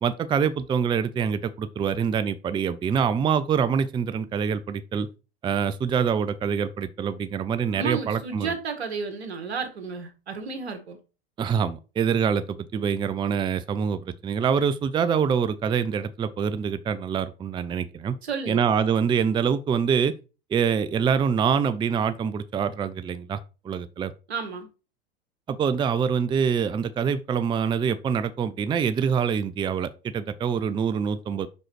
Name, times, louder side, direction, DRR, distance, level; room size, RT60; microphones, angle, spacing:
voice 1, 0.0-5.1 5.4-8.5 11.4-18.2 18.5-20.1 20.5-24.1 25.5-31.5, right 7 dB, 15° right, 0.5 m, -25 dB
voice 2, 7.8-11.0 18.2-18.6 24.3-24.7, right 5 dB, 85° right, 1.8 m, -32 dB
5.6 x 5.3 x 4.6 m
hypercardioid pair, 100°, 32 cm